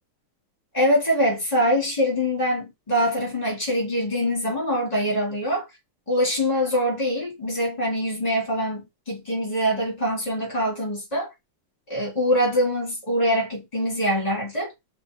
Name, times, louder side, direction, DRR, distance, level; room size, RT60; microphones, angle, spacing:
voice 1, 0.7-5.7 6.1-11.3 11.9-14.7, equal, 15° left, 3.8 m, -24 dB
5.6 x 4.4 x 4.9 m
omnidirectional pair, 2.3 m